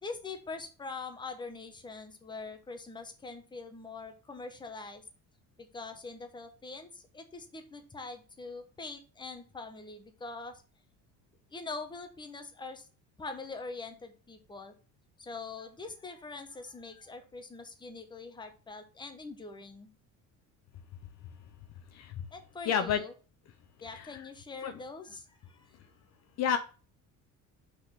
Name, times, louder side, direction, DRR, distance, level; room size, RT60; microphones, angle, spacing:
voice 1, 0.0-5.0 5.6-10.6 11.5-12.9 13.2-14.7 15.2-19.9 22.3-23.1 23.8-25.8, left 3 dB, 15° left, 6 dB, 1.0 m, -43 dB
voice 2, 22.7-23.0 23.9-24.2 24.6-24.7 26.4-26.6, left 8 dB, 50° left, 9 dB, 0.6 m, -30 dB
5.6 x 4.1 x 5.7 m, 0.36 s
cardioid pair, 150°, 35 cm